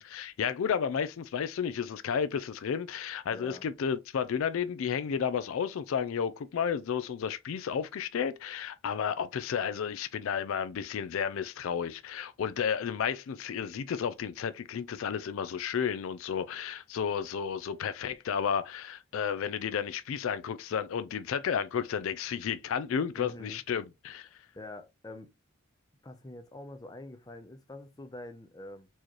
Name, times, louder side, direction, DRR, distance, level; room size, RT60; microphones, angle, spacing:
voice 1, 0.0-24.3, left 7 dB, 65° left, 0.3 m, -32 dB
voice 2, 3.3-3.7 23.1-23.6 24.5-25.3 26.0-28.9, left 2 dB, 15° left, 0.5 m, -45 dB
4.5 x 2.9 x 3.1 m
head